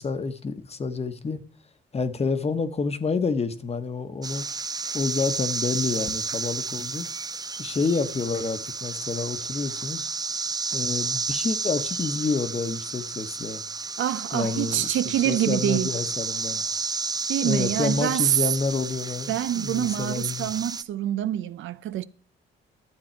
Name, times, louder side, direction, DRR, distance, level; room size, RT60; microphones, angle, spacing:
voice 1, 0.0-1.4 1.9-4.4 4.9-7.1 7.6-10.1 10.7-13.6 14.3-15.0 15.2-16.6 17.4-20.5, left 4 dB, 30° left, 1.1 m, -28 dB
sound 1, 4.2-20.8, right 4 dB, 20° right, 0.5 m, -32 dB
voice 2, 14.0-15.9 17.3-18.3 19.3-22.0, right 12 dB, 75° right, 0.6 m, -26 dB
12.0 x 7.9 x 4.5 m
cardioid pair, 90°, 20 cm